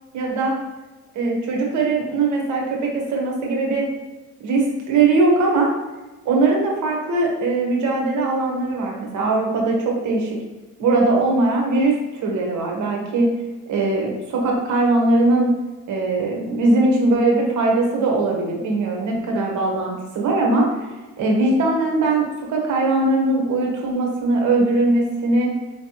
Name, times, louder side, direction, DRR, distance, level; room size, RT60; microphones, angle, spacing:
voice 1, 0.1-0.5 1.1-3.8 4.4-5.7 6.2-10.4 10.8-13.3 13.7-15.5 15.9-20.7 21.2-25.5, right 2 dB, 75° right, 0 dB, 1.2 m, -20 dB
4.8 x 3.2 x 2.9 m, 1.2 s
cardioid pair, 90°, 30 cm